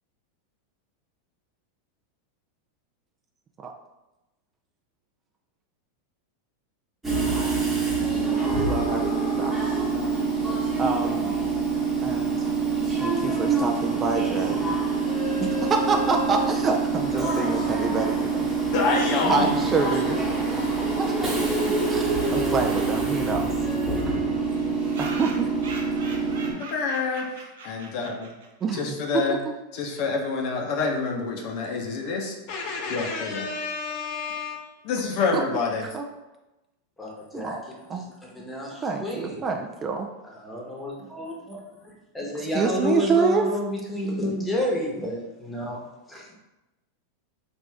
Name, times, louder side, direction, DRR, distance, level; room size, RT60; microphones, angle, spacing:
Train / Subway metro underground, 7.0-26.5, right 4 dB, 10° right, 1.2 m, -25 dB
voice 1, 8.4-9.6 10.8-11.3 12.0-12.5 13.0-14.7 15.4-18.5 19.3-20.3 21.0-23.5 25.0-25.5 28.6-28.8 29.1-29.2 35.9-36.0 37.3-37.6 37.9-38.1 38.8-40.1 42.5-43.4, right 4 dB, 25° right, 3 dB, 0.4 m, -27 dB
voice 2, 18.7-19.7 26.6-27.4 27.6-28.3 28.7-29.4 29.7-35.9, left 4 dB, 55° left, 0 dB, 0.7 m, -27 dB
sound 1, 23.4-23.5 23.7-23.8 24.4-28.7, right 3 dB, 75° right, 0.6 m, -41 dB
voice 3, 37.0-37.6 38.0-39.4 40.4-45.8 46.1-46.3, left 1 dB, 10° left, -2 dB, 1.0 m, -31 dB
3.5 x 2.5 x 3.3 m, 1.0 s
hypercardioid pair, 105°, 0 cm